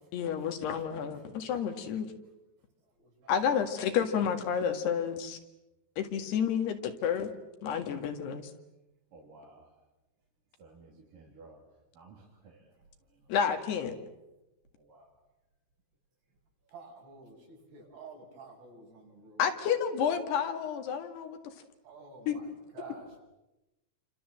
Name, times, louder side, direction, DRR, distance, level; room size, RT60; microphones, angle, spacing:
voice 1, 0.1-2.1 3.3-5.4 6.0-7.3 7.6-8.5 13.3-14.0 19.4-21.5 22.3-22.4, left 7 dB, 80° left, 6 dB, 4.0 m, -30 dB
voice 2, 3.0-3.4 3.6-3.8 16.7-19.5 21.8-23.2, right 4 dB, 80° right, -1 dB, 9.1 m, -50 dB
voice 3, 9.1-9.8 10.6-11.6 11.9-13.3 14.8-15.2, right 3 dB, 55° right, -2 dB, 4.8 m, -56 dB
28.5 x 26.0 x 7.7 m, 0.97 s
omnidirectional pair, 4.7 m